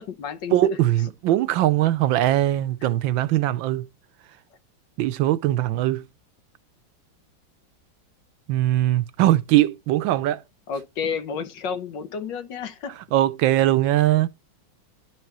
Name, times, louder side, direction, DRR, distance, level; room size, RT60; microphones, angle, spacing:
voice 1, 0.0-0.8 2.8-2.9 10.7-12.9, left 6 dB, 70° left, 1.6 m, -31 dB
voice 2, 0.5-3.9 5.0-6.0 8.5-10.4 13.1-14.3, right 14 dB, 80° right, 1.4 m, -21 dB
11.5 x 4.6 x 2.9 m
omnidirectional pair, 2.1 m